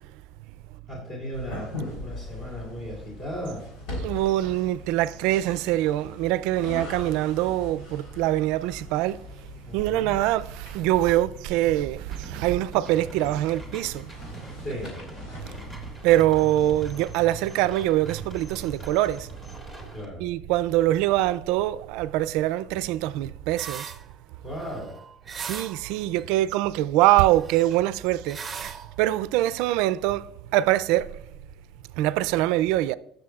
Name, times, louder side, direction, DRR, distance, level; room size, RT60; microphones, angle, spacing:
voice 1, 0.9-3.7 9.7-10.1 14.5-15.0 19.9-20.3 24.4-25.0, equal, 40° left, 3.3 m, -36 dB
sound 1, 1.3-17.1, left 1 dB, 85° left, 3.5 m, -41 dB
voice 2, 4.0-9.2 9.7-14.1 15.4-15.5 15.8-19.3 20.2-23.9 25.4-31.1 32.0-32.9, right 14 dB, 80° right, 0.3 m, -24 dB
sound 2, 12.1-20.0, equal, 15° left, 1.9 m, -44 dB
sound 3, 23.6-24.1 24.4-26.2 27.2-28.0 28.2-29.0, right 6 dB, 25° right, 0.5 m, -39 dB
18.5 x 6.7 x 2.4 m
cardioid pair, 120°, 0 cm